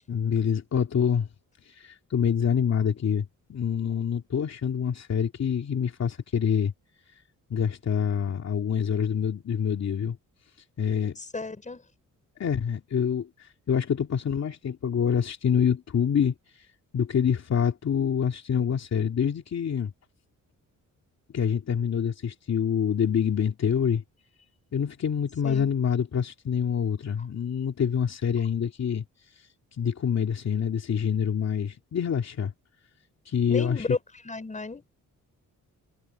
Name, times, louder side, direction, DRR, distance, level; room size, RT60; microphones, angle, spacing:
voice 1, 0.1-1.3 1.6-6.7 7.5-10.2 10.8-11.2 12.4-16.7 16.9-19.9 21.3-24.0 24.7-29.0 29.3-29.5 29.8-32.5 33.2-34.0, left 7 dB, 55° left, 2.7 m, -26 dB
voice 2, 11.2-11.8 25.4-25.7 33.5-34.0 34.2-34.8, left 3 dB, 20° left, 6.3 m, -33 dB
wide cardioid pair, 140°, 33 cm